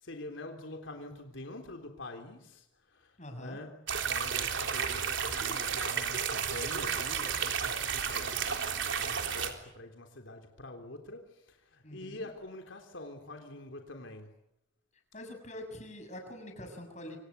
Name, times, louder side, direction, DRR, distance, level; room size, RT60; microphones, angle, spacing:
voice 1, 0.0-3.1 3.4-3.7 4.0-14.3, left 2 dB, 85° left, 3.7 m, -46 dB
voice 2, 3.2-3.6 11.8-12.3 15.1-17.2, left 1 dB, 35° left, 6.8 m, -44 dB
sound 1, 3.9-9.5, right 7 dB, 80° right, 3.7 m, -32 dB
27.0 x 26.5 x 8.3 m
head